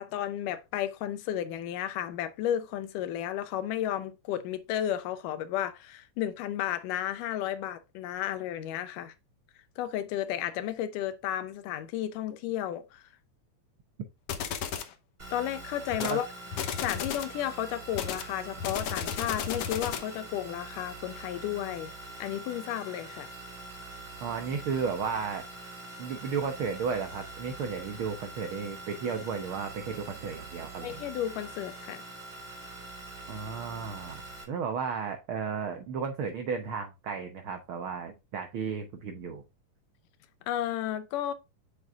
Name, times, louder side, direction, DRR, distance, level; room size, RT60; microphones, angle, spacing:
voice 1, 0.0-9.1 9.8-13.0 15.3-16.3 16.8-21.9 22.2-23.3 30.8-32.1 40.5-41.3, left 11 dB, 85° left, 2.4 m, -33 dB
sound 1, 14.3-14.9 15.9-16.2 16.5-17.4 17.9-20.2, left 8 dB, 70° left, 1.4 m, -34 dB
sound 2, 15.2-34.4, right 2 dB, 20° right, 2.0 m, -44 dB
voice 2, 24.2-25.4 26.0-31.0 33.3-34.2 34.5-39.4, right 6 dB, 85° right, 1.1 m, -34 dB
7.9 x 6.8 x 2.4 m
omnidirectional pair, 3.7 m